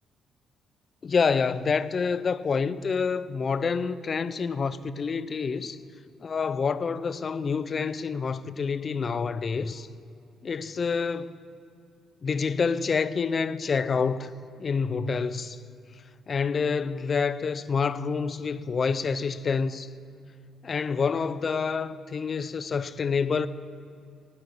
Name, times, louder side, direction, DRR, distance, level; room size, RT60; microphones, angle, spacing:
voice 1, 1.0-5.8 6.2-9.9 10.4-11.3 12.2-14.3 14.6-15.6 16.3-19.9 20.6-23.5, left 5 dB, 45° left, 0.5 m, -27 dB
19.0 x 9.7 x 5.5 m
cardioid pair, 90°, 0 cm